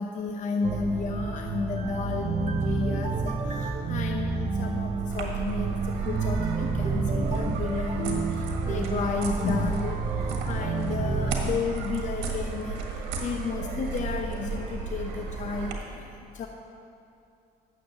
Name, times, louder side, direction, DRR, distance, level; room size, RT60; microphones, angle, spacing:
voice 1, 0.0-12.8 13.2-16.0 16.3-16.5, left 4 dB, 45° left, 3 dB, 0.7 m, -32 dB
sound 1, 0.6-11.4, right 4 dB, 40° right, 0.9 m, -30 dB
sound 2, 5.1-15.7, right 5 dB, 90° right, 1.5 m, -33 dB
9.4 x 7.4 x 6.7 m, 2.6 s
cardioid pair, 110°, 17 cm